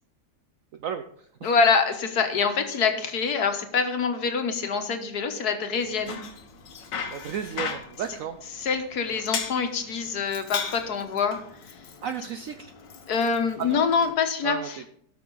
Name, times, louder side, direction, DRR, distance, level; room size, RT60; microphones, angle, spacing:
voice 1, 1.4-6.2 8.1-11.8 13.1-14.9, left 5 dB, 65° left, 6 dB, 1.7 m, -25 dB
Bicycle, 5.8-14.1, left 6 dB, 85° left, 1.9 m, -37 dB
voice 2, 7.1-8.4 12.0-12.7 13.6-13.8 14.4-14.7, right 8 dB, 65° right, 8 dB, 0.9 m, -33 dB
17.5 x 6.0 x 3.9 m, 0.66 s
omnidirectional pair, 1.8 m